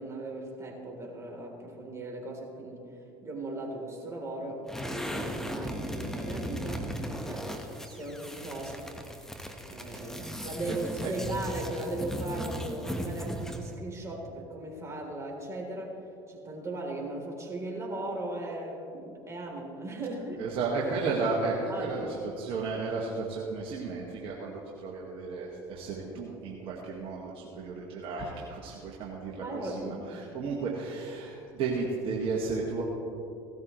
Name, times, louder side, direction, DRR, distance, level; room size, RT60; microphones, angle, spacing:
voice 1, 0.0-2.8 3.2-8.9 9.6-16.0 16.3-20.4 21.7-22.0 29.3-30.0, right 2 dB, 25° right, -1 dB, 3.5 m, -38 dB
sound 1, 4.7-13.7, equal, 5° left, 1.2 m, -37 dB
voice 2, 20.4-32.8, right 4 dB, 55° right, -3 dB, 1.8 m, -33 dB
17.0 x 13.0 x 3.2 m, 2.8 s
hypercardioid pair, 75°, 11 cm